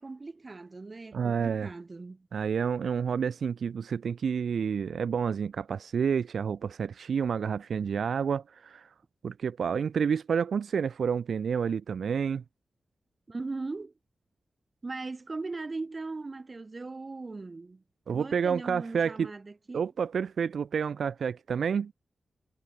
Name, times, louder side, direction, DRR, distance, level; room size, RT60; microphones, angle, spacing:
voice 1, 0.0-2.3 13.3-13.9 14.8-17.8 18.1-19.9, right 3 dB, 30° right, 1.8 m, -39 dB
voice 2, 1.1-1.7 2.3-8.9 9.2-12.4 18.1-19.3 19.7-21.9, right 6 dB, 85° right, 0.3 m, -29 dB
wide cardioid pair, 165°, 0 cm